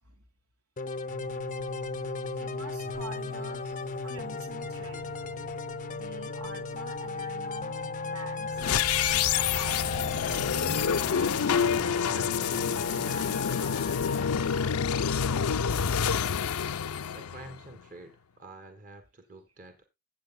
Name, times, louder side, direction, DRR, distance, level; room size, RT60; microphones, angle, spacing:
sound 1, 0.8-14.5, left 4 dB, 35° left, 0.6 m, -36 dB
sound 2, 1.1-13.1, left 1 dB, 60° right, 1.9 m, -46 dB
voice 1, 2.3-5.1 5.9-8.7 9.1-11.1 11.8-15.2, right 3 dB, 80° right, 3.2 m, -47 dB
sound 3, 8.6-17.8, left 7 dB, 80° left, 0.6 m, -28 dB
voice 2, 17.1-19.9, right 2 dB, 35° right, 1.7 m, -48 dB
15.5 x 8.0 x 2.2 m
head